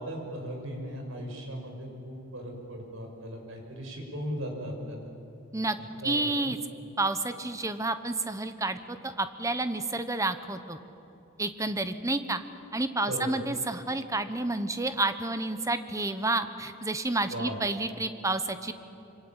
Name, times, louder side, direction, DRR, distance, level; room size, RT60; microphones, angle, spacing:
voice 1, 0.0-5.1 6.0-6.5 13.1-13.3 17.3-17.6, equal, 75° right, 2 dB, 6.0 m, -37 dB
voice 2, 6.0-6.6 7.0-10.8 11.4-12.4 12.7-18.7, right 2 dB, 15° right, 10 dB, 1.2 m, -30 dB
25.5 x 25.5 x 9.1 m, 2.9 s
head